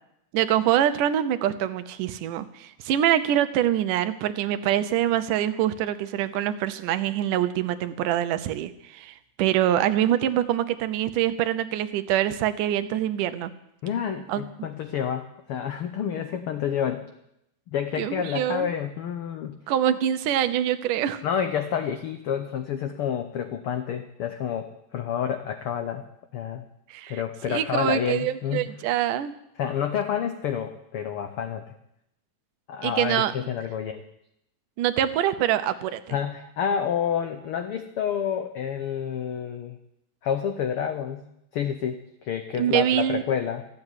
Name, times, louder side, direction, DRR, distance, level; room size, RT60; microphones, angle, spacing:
voice 1, 0.3-13.5 14.3-14.4 18.0-18.7 19.7-21.2 26.9-29.3 32.8-33.3 34.8-36.2 42.6-43.2, right 11 dB, 90° right, 11 dB, 2.4 m, -25 dB
voice 2, 13.8-17.1 17.7-19.6 21.2-26.0 26.3-26.6 27.1-28.7 29.6-31.6 32.7-34.0 36.1-39.8 40.2-41.3 41.5-43.7, left 8 dB, 85° left, 7 dB, 1.2 m, -29 dB
14.0 x 7.8 x 9.8 m, 0.80 s
omnidirectional pair, 3.6 m